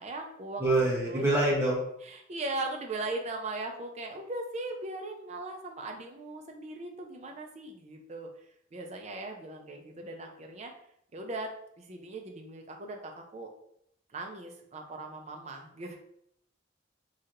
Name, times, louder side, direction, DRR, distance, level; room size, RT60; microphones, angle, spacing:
voice 1, 0.0-1.3 2.0-8.3 8.7-10.7 11.1-13.5 14.1-16.0, right 2 dB, 35° right, 3 dB, 0.4 m, -39 dB
voice 2, 0.6-1.8, right 2 dB, 15° right, -7 dB, 0.8 m, -25 dB
3.2 x 2.7 x 2.4 m, 0.73 s
head